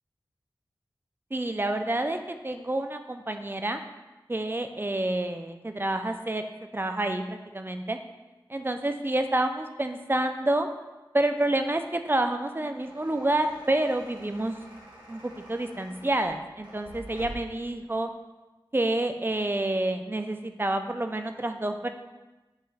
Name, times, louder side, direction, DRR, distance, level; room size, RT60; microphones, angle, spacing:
voice 1, 1.3-3.8 4.3-6.4 6.7-8.0 8.5-10.7 11.1-14.5 15.1-15.2 15.5-18.1 18.7-21.9, right 1 dB, 25° right, 7 dB, 0.6 m, -28 dB
sound 1, 12.6-17.6, right 1 dB, 85° right, 2.1 m, -47 dB
8.0 x 3.1 x 5.6 m, 1.1 s
cardioid pair, 40°, 8 cm